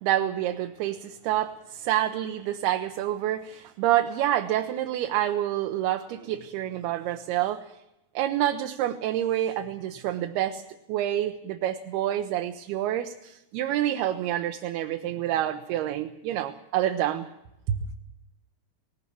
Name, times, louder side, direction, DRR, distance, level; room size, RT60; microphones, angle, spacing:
voice 1, 0.0-7.6 8.1-10.6 10.9-17.3 17.7-17.8, right 12 dB, 80° right, 5 dB, 2.9 m, -27 dB
19.5 x 18.0 x 8.5 m, 0.85 s
omnidirectional pair, 4.6 m